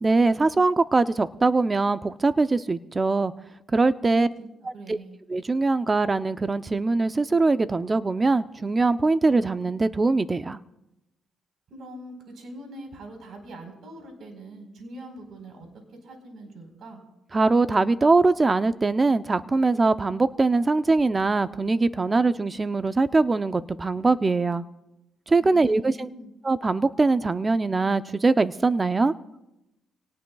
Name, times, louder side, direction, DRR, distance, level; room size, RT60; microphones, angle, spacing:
voice 1, 0.0-3.3 3.7-4.3 4.6-5.0 5.3-10.6 17.3-24.6 25.3-26.1 26.4-29.1, right 3 dB, 25° right, 12 dB, 0.6 m, -22 dB
voice 2, 4.0-4.5 4.7-5.2 11.7-15.7 16.0-17.0 25.4-26.3, right 1 dB, 65° right, 4 dB, 4.4 m, -43 dB
26.5 x 18.0 x 2.4 m, 0.91 s
cardioid pair, 90°, 0 cm